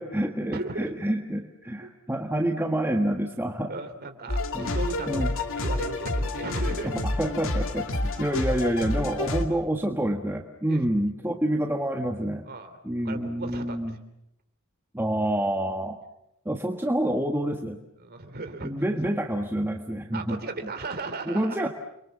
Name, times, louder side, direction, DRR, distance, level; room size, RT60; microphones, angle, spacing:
voice 1, 0.0-3.7 4.5-4.7 5.1-5.3 6.8-6.9 7.2-12.4 12.8-14.0 14.9-16.0 16.4-17.8 18.6-20.4 21.3-21.7, right 1 dB, 10° right, 3 dB, 1.5 m, -27 dB
voice 2, 0.5-0.9 1.8-1.9 3.7-7.1 9.5-9.6 10.7-10.9 11.2-11.4 12.5-12.8 13.0-14.0 18.0-18.7 20.1-21.7, right 3 dB, 45° right, 7 dB, 3.1 m, -36 dB
sound 1, 4.3-9.4, left 2 dB, 65° left, 2.5 m, -28 dB
30.0 x 23.5 x 7.3 m, 0.81 s
head